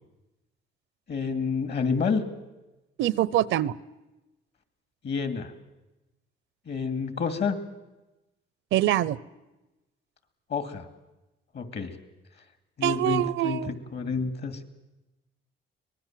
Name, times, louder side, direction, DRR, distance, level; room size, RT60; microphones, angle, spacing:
voice 1, 1.1-2.2 5.0-5.5 6.7-7.6 10.5-10.9 11.5-11.9 12.8-14.6, left 5 dB, 60° left, 10 dB, 2.6 m, -29 dB
voice 2, 3.0-3.7 8.7-9.2 12.8-13.7, right 13 dB, 80° right, 21 dB, 0.7 m, -24 dB
24.0 x 19.5 x 7.6 m, 1.0 s
cardioid pair, 90°, 20 cm